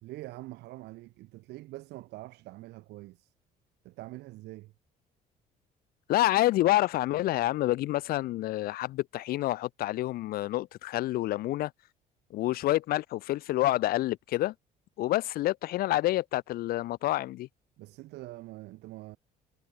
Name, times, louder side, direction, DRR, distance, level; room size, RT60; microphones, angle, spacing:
voice 1, 0.0-3.3 3.8-4.7 17.8-19.2, right 18 dB, 85° right, 2.6 m, -44 dB
voice 2, 6.1-11.7 12.3-14.5 15.0-17.5, left 16 dB, 65° left, 0.4 m, -28 dB
cardioid pair, 110°, 17 cm